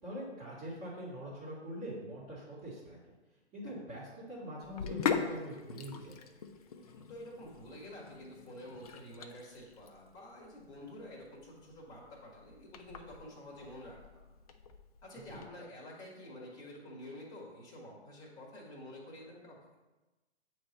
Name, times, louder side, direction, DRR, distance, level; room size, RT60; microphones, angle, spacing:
voice 1, 0.0-3.2 3.5-6.2 15.3-15.4, equal, 25° right, -10 dB, 1.9 m, -44 dB
Sink (filling or washing), 4.6-15.5, left 7 dB, 35° left, 0.4 m, -41 dB
voice 2, 7.1-14.0 15.0-19.6, left 1 dB, 10° left, -4 dB, 1.4 m, -49 dB
8.5 x 3.2 x 4.1 m, 1.1 s
hypercardioid pair, 135°, 34 cm